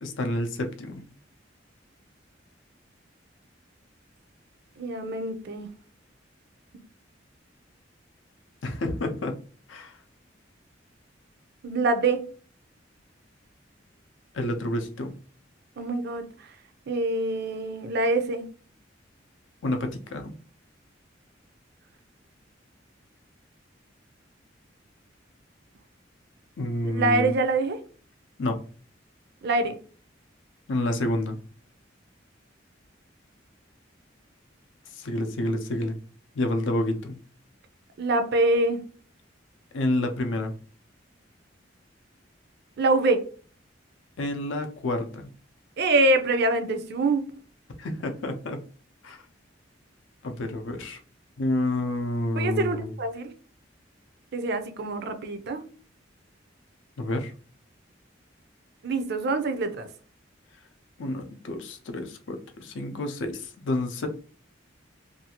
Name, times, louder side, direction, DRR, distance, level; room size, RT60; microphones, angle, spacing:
voice 1, 0.0-1.1 8.6-9.4 9.7-10.0 14.3-15.1 19.6-20.4 26.6-27.3 28.4-28.6 30.7-31.4 34.9-36.0 36.4-37.2 39.7-40.5 44.2-45.3 47.8-48.6 49.0-49.2 50.2-51.0 51.4-52.9 57.0-57.3 61.0-64.1, left 1 dB, 80° left, 0.5 m, -29 dB
voice 2, 4.8-5.7 11.6-12.3 15.8-16.2 16.9-18.4 26.8-27.8 29.4-29.8 38.0-38.8 42.8-43.2 45.8-47.2 52.4-53.3 54.3-55.6 58.8-59.9, right 2 dB, 60° right, 0.5 m, -25 dB
2.6 x 2.3 x 2.8 m
head